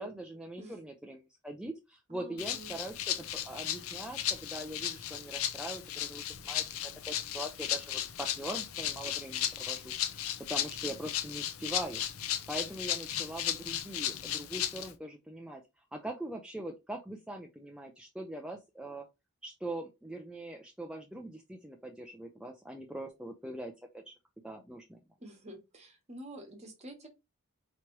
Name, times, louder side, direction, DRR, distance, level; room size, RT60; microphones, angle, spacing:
voice 1, 0.0-15.6 15.9-19.1 19.4-24.2 24.4-25.0, right 1 dB, 5° right, 0.4 m, -42 dB
voice 2, 2.1-2.8 25.2-27.1, right 1 dB, 30° right, 1.1 m, -48 dB
Rattle (instrument), 2.4-14.9, left 11 dB, 70° left, 0.6 m, -35 dB
4.8 x 3.0 x 3.0 m
head